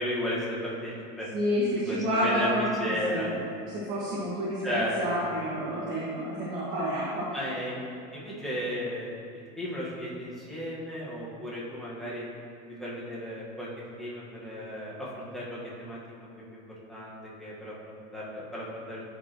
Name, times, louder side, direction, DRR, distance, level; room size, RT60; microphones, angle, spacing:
voice 1, 0.0-1.3 1.8-2.5 2.8-3.3 4.6-5.0 7.3-7.8 8.1-9.2 9.6-12.2 12.8-13.7 14.0-16.6 16.9-19.0, equal, ahead, -8 dB, 1.5 m, -34 dB
voice 2, 1.3-3.4 3.7-7.3, equal, 45° right, -8 dB, 1.6 m, -29 dB
12.5 x 5.2 x 3.0 m, 2.5 s
cardioid pair, 170°, 20 cm